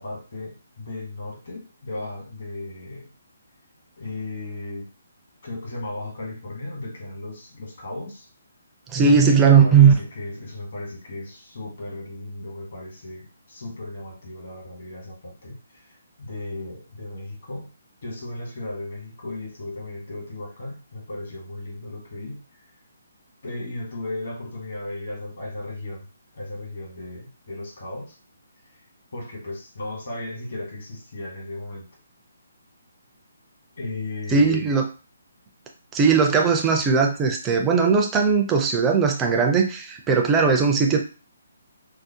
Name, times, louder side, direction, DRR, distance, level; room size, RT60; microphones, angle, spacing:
voice 1, 0.0-3.1 4.0-4.9 5.4-8.3 8.9-15.9 16.2-17.7 18.0-22.4 23.4-26.1 26.3-28.1 29.1-31.9 33.8-34.7, left 2 dB, 55° left, -1 dB, 1.2 m, -35 dB
voice 2, 8.9-9.9 34.3-34.8 35.9-41.0, right 5 dB, 15° right, 2 dB, 0.4 m, -18 dB
2.7 x 2.0 x 2.7 m, 0.34 s
figure-of-eight pair, 140°, 0 cm